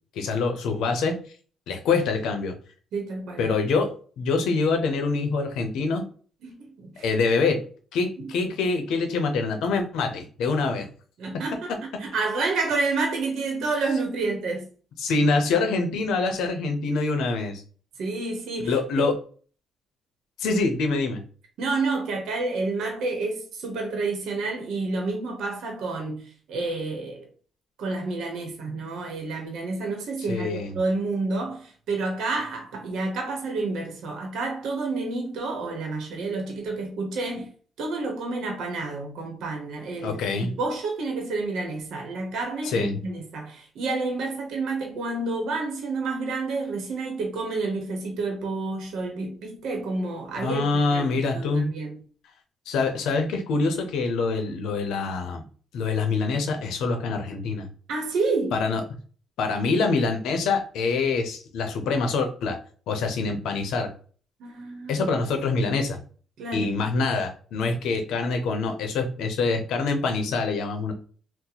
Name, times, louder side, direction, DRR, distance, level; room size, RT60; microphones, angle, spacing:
voice 1, 0.1-1.2 1.7-2.5 3.4-6.0 7.0-7.6 7.9-10.9 15.0-17.6 18.6-19.2 20.4-21.2 30.3-30.7 40.0-40.5 42.6-43.0 50.4-51.6 52.7-55.4 55.7-57.7 58.5-58.8 59.4-62.6 62.9-63.9 64.9-66.0 66.5-70.9, left 4 dB, 85° left, 0.6 m, -25 dB
voice 2, 2.9-3.5 6.4-7.1 8.2-8.3 11.2-11.7 12.0-14.7 18.0-19.1 21.6-27.3 27.8-37.5 37.8-51.1 51.3-52.0 57.9-58.6 64.4-65.1 66.4-66.7, right 3 dB, 80° right, 0.8 m, -29 dB
2.9 x 2.1 x 3.9 m
cardioid pair, 90°, 0 cm